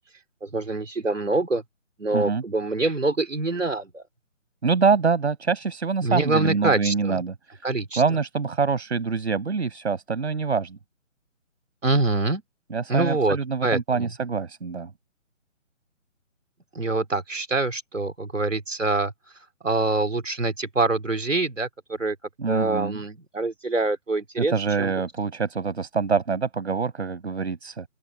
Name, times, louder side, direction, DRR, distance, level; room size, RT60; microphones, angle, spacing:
voice 1, 0.4-1.6 2.0-4.0 6.0-7.2 7.6-8.0 11.8-12.4 12.9-13.4 13.6-14.1 16.7-19.1 19.6-22.2 22.5-24.5 24.8-24.9, right 2 dB, 75° right, 3.9 m, -25 dB
voice 2, 2.1-2.4 4.6-7.3 8.0-10.8 12.7-14.9 22.4-23.0 24.4-27.8, right 5 dB, 60° right, 6.3 m, -25 dB
open air
figure-of-eight pair, 145°, 38 cm